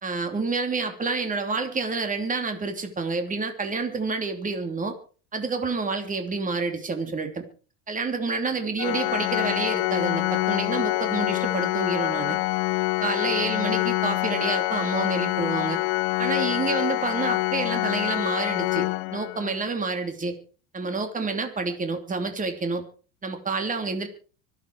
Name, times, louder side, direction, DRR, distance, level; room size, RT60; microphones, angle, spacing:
voice 1, 0.0-4.9 5.3-7.4 7.9-12.4 13.0-15.8 16.2-20.3 20.7-22.8 23.2-24.1, right 4 dB, 20° right, 6 dB, 3.0 m, -28 dB
Organ, 8.8-19.6, left 21 dB, 80° left, 0.9 m, -26 dB
25.0 x 8.4 x 4.8 m, 0.38 s
supercardioid pair, 110°, 39 cm